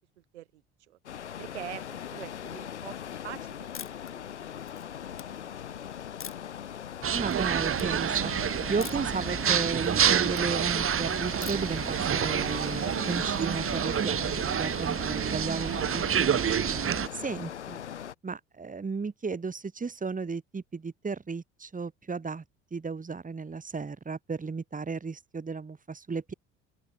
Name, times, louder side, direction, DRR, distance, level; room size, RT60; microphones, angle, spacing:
sound 1, 1.1-18.2, left 9 dB, 85° left, 2.1 m, -40 dB
voice 1, 1.4-4.6 5.1-5.6, right 14 dB, 75° right, 3.6 m, -45 dB
sound 2, 3.7-4.1 4.6-5.2 6.2-6.6 7.1-7.5 7.7-7.9 8.8-9.2 9.5-10.5 11.4-11.8, left 8 dB, 40° left, 4.4 m, -43 dB
sound 3, 7.0-17.1, right 8 dB, 40° right, 3.7 m, -28 dB
voice 2, 7.1-8.3 8.7-16.3 17.1-17.8 18.2-22.4 22.7-26.3, right 4 dB, 25° right, 4.8 m, -34 dB
open air
figure-of-eight pair, 60°, 34 cm